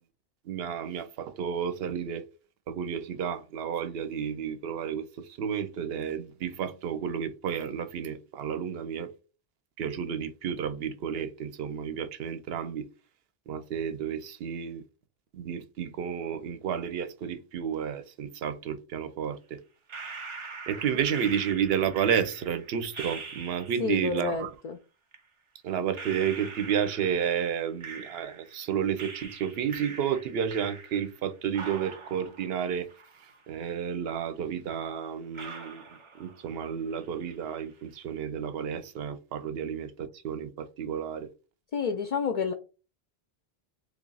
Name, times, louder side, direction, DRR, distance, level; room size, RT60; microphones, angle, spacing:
voice 1, 0.4-2.2 2.7-9.1 9.8-12.9 13.5-14.8 15.3-19.6 20.7-24.5 25.6-32.9 33.5-41.3, right 8 dB, 75° right, 0.8 m, -31 dB
sound 1, 19.9-24.0 25.1-25.2 25.9-28.6 29.0-31.2 31.5-33.6 33.9-34.0 34.7-34.8 35.3-36.7 36.9-37.5, right 4 dB, 40° right, 0.5 m, -43 dB
voice 2, 23.8-24.8 41.7-42.5, left 6 dB, 55° left, 0.4 m, -29 dB
3.4 x 2.4 x 3.9 m
omnidirectional pair, 1.1 m